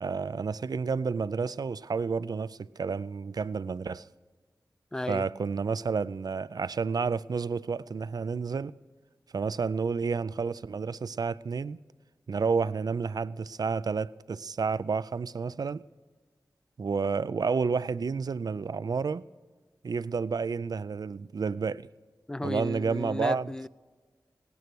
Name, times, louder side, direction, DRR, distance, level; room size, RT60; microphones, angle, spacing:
voice 1, 0.0-4.1 5.1-8.7 9.3-11.8 12.3-15.8 16.8-19.2 19.8-21.9 22.4-23.5, right 5 dB, 60° right, 0.4 m, -30 dB
voice 2, 4.9-5.3 22.3-23.7, left 1 dB, 10° left, 0.3 m, -33 dB
17.5 x 9.6 x 6.1 m
cardioid pair, 55°, 7 cm